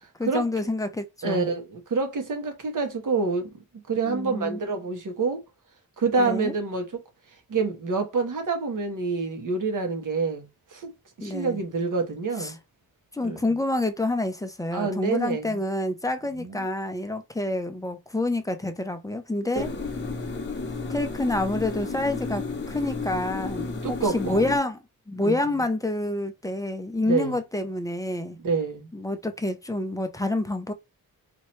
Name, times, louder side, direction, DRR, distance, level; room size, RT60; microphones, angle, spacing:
voice 1, 0.2-1.5 4.0-4.6 6.2-6.5 11.2-11.6 12.4-12.6 13.1-19.7 20.9-28.4 28.9-30.7, left 2 dB, 10° left, 0.6 m, -28 dB
voice 2, 1.2-3.6 3.9-5.4 6.0-7.0 7.5-10.9 11.2-12.6 13.2-13.4 14.7-15.6 16.4-16.7 19.5-19.7 23.8-24.4 25.2-25.6 27.1-27.4 28.4-28.9, right 4 dB, 60° right, 1.2 m, -27 dB
sound 1, 19.5-24.6, left 4 dB, 30° left, 0.9 m, -32 dB
4.4 x 2.8 x 3.1 m
wide cardioid pair, 120°, 35 cm